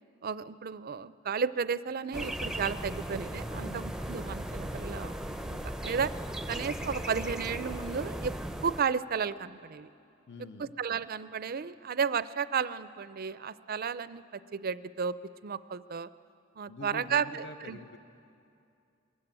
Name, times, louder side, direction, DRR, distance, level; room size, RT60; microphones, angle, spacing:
voice 1, 0.2-5.1 5.4-6.1 6.5-8.3 8.6-9.9 10.6-14.2 14.5-15.1 15.4-16.1 16.6-17.8, right 6 dB, 50° right, 16 dB, 0.5 m, -33 dB
sound 1, 2.1-8.8, right 1 dB, 5° right, 0.5 m, -37 dB
voice 2, 3.5-3.8 10.3-10.7 16.7-18.0, left 2 dB, 60° left, 8 dB, 0.9 m, -45 dB
22.0 x 14.0 x 8.9 m, 2.6 s
head